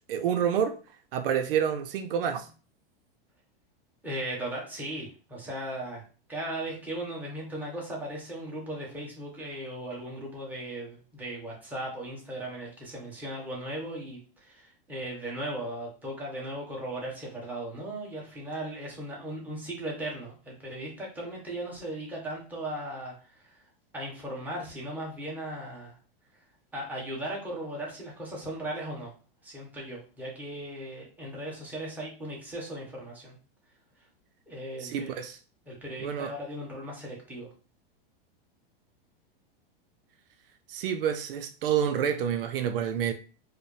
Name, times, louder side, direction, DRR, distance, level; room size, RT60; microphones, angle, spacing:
voice 1, 0.1-0.8 1.1-2.5 34.8-35.4 36.0-36.3 40.7-43.1, right 8 dB, 75° right, 0.5 m, -28 dB
voice 2, 4.0-6.0 6.3-23.6 23.9-26.0 26.7-29.1 29.4-33.4 34.5-35.1 35.7-37.5, right 1 dB, 5° right, 1.2 m, -37 dB
4.8 x 2.1 x 3.2 m
supercardioid pair, 150°, 29 cm